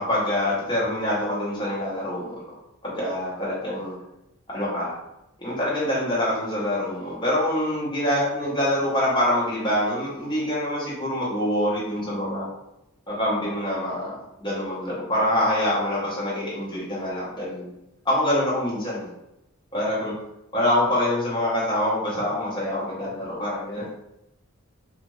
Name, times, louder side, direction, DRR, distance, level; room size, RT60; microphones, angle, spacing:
voice 1, 0.0-2.4 2.8-4.0 4.5-4.9 5.4-12.5 13.1-17.7 18.0-19.1 19.7-20.2 20.5-23.8, left 1 dB, 20° left, -7 dB, 0.9 m, -25 dB
2.5 x 2.4 x 3.0 m, 0.87 s
head